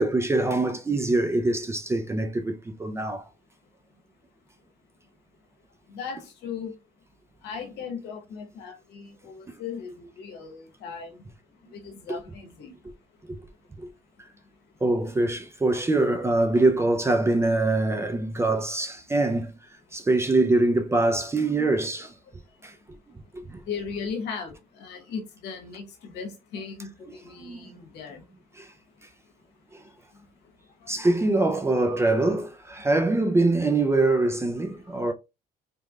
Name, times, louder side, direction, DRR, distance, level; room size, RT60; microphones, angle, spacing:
voice 1, 0.0-3.2 9.5-9.6 12.1-12.2 13.3-13.4 13.8-13.9 14.8-19.5 19.9-22.1 22.6-22.7 23.3-23.6 27.4-27.7 28.6-28.7 30.9-35.1, right 2 dB, 15° right, 0.4 m, -24 dB
voice 2, 5.9-6.7 7.4-11.1 11.7-12.7 23.6-28.2, left 6 dB, 80° left, 1.0 m, -37 dB
3.3 x 3.1 x 2.3 m
cardioid pair, 110°, 17 cm